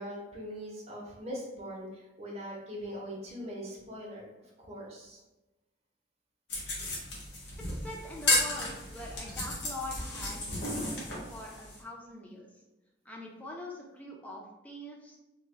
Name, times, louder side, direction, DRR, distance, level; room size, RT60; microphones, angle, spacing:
voice 1, 0.0-4.3 4.6-5.2, equal, 35° right, -2 dB, 0.7 m, -41 dB
sound 1, 6.5-11.8, left 2 dB, 75° left, 1.0 m, -33 dB
voice 2, 7.7-12.6 13.0-15.2, left 1 dB, 10° left, -2 dB, 0.5 m, -44 dB
3.3 x 2.2 x 3.2 m, 1.0 s
head